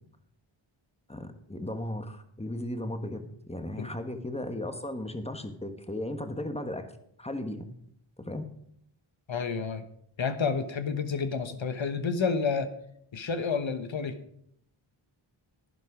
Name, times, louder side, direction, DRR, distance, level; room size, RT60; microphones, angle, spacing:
voice 1, 1.1-6.9 7.2-7.6 8.2-8.4, left 1 dB, 10° left, 8 dB, 1.3 m, -36 dB
voice 2, 9.3-9.9 10.2-12.7 13.1-14.2, left 5 dB, 65° left, 9 dB, 1.1 m, -30 dB
11.0 x 11.0 x 4.9 m, 0.71 s
wide cardioid pair, 75°, 50 cm